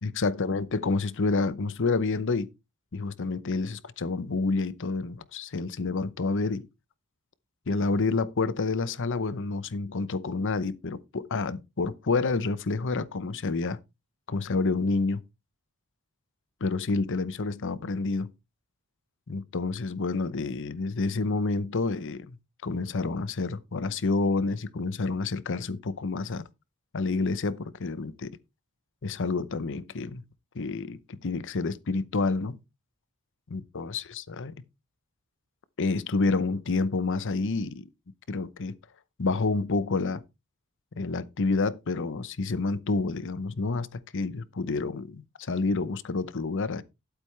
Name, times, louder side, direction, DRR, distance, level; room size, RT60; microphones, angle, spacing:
voice 1, 0.0-2.5 2.9-6.7 7.7-13.8 14.3-15.2 16.6-18.3 19.3-22.4 22.6-26.4 26.9-28.4 29.0-30.2 30.5-32.6 33.5-34.5 35.8-37.9 38.3-38.7 39.2-40.2 41.0-46.8, left 3 dB, 60° left, 0.8 m, -29 dB
11.5 x 8.2 x 3.3 m
head